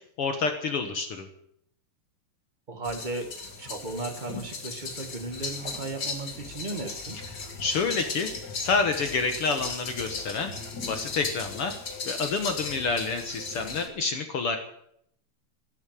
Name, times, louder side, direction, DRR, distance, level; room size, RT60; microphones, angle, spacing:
voice 1, 0.2-1.3 7.6-10.5 10.8-11.7 12.1-14.6, left 4 dB, 55° left, 6 dB, 1.7 m, -28 dB
voice 2, 2.7-3.3 3.6-7.2, right 2 dB, 70° right, 4 dB, 0.4 m, -35 dB
sound 1, 2.8-13.9, left 4 dB, 40° left, 1.8 m, -37 dB
12.5 x 10.5 x 9.1 m, 0.72 s
omnidirectional pair, 3.8 m